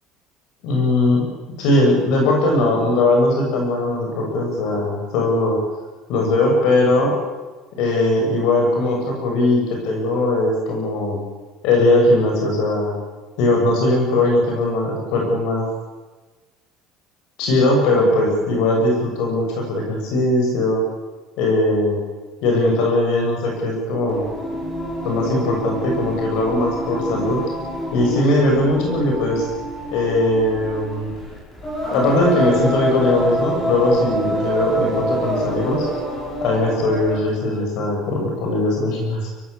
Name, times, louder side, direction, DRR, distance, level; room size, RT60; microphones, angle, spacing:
voice 1, 0.6-1.3 1.6-5.6 6.1-7.1 7.8-11.2 11.6-13.0 13.4-15.7 17.4-20.8 21.4-22.0 22.4-24.2 25.0-27.4 27.9-29.5 29.9-31.1 31.9-35.9 36.4-39.3, left 2 dB, 60° left, 0 dB, 7.2 m, -19 dB
Singing, 24.1-37.3, equal, 15° left, 6.2 m, -26 dB
24.0 x 17.0 x 8.5 m, 1.3 s
cardioid pair, 175°, 0 cm